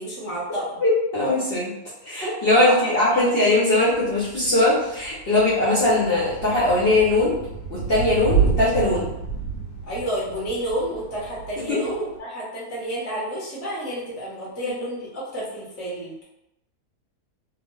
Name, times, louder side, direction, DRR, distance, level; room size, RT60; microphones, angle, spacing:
voice 1, 0.0-0.8 2.6-3.4 9.8-16.2, right 1 dB, 15° left, -7 dB, 0.5 m, -30 dB
voice 2, 0.8-1.7 2.0-7.3 7.7-9.1 11.7-11.8, left 2 dB, 50° left, -8 dB, 0.8 m, -20 dB
Thunder / Rain, 3.9-12.2, right 5 dB, 80° left, 1.2 m, -29 dB
2.8 x 2.0 x 3.0 m, 0.87 s
omnidirectional pair, 1.7 m